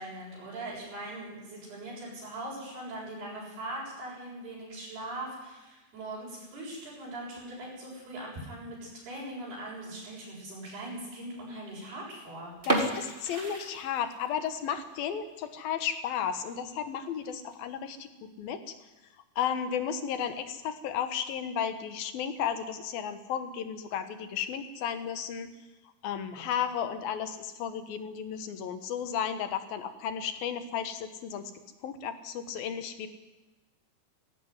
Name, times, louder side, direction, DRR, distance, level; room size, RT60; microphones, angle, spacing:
voice 1, 0.0-12.5 26.2-26.5, right 1 dB, 75° right, -5 dB, 9.1 m, -41 dB
sound 1, 12.6-14.5 14.8-14.9 15.4-15.6 16.0-16.1 16.4-16.5 17.2-17.6, right 1 dB, 20° right, 1.5 m, -31 dB
voice 2, 12.7-18.7 19.4-25.5 26.0-31.5 31.8-33.1, left 8 dB, 70° left, 10 dB, 3.0 m, -34 dB
18.0 x 16.5 x 9.7 m, 1.1 s
omnidirectional pair, 4.6 m